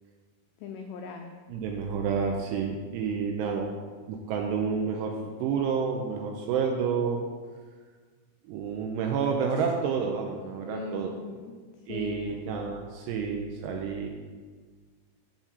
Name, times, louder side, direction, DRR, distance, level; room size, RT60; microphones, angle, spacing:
voice 1, 0.6-1.3 10.7-11.6 11.9-12.8, left 6 dB, 85° left, 4 dB, 2.4 m, -39 dB
voice 2, 1.5-3.7 4.1-7.2 8.5-11.1 11.9-14.1, right 6 dB, 85° right, 2 dB, 2.5 m, -29 dB
7.9 x 4.4 x 6.9 m, 1.5 s
omnidirectional pair, 5.5 m